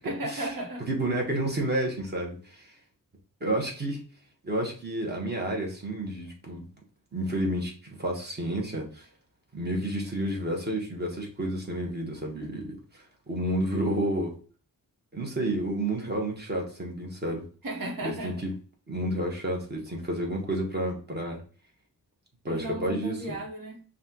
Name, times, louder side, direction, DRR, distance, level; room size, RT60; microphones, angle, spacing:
voice 1, 0.0-0.8 17.6-18.4 22.5-23.8, right 2 dB, 85° right, 1.3 m, -35 dB
voice 2, 0.9-2.7 3.4-4.0 4.4-6.7 7.1-9.1 9.5-14.3 15.1-17.5 18.0-18.5 18.9-21.4 22.4-23.4, right 1 dB, 30° right, 1.3 m, -30 dB
5.8 x 2.6 x 2.9 m
wide cardioid pair, 140°, 33 cm